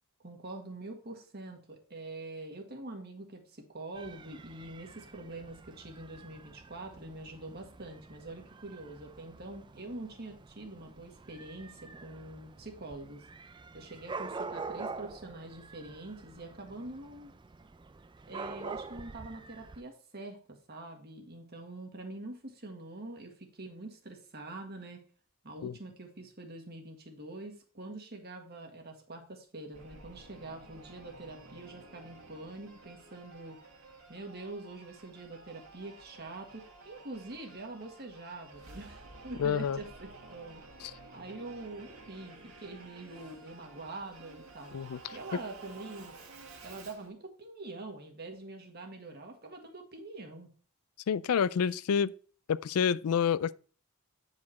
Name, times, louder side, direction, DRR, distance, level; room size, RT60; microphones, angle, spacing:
voice 1, 0.2-13.2 13.7-17.3 18.2-25.0 25.4-33.6 34.1-40.6 41.1-44.8 45.1-46.1 46.6-50.5, right 2 dB, 45° right, 1.7 m, -45 dB
Dog / Cat, 3.9-19.8, right 4 dB, 20° right, 0.4 m, -46 dB
Singing / Musical instrument, 29.7-47.1, right 3 dB, 65° right, 2.2 m, -52 dB
voice 2, 39.4-39.8 40.8-40.9 44.7-45.0 51.1-52.1 52.5-53.6, left 7 dB, 85° left, 0.4 m, -28 dB
9.5 x 4.9 x 4.1 m
head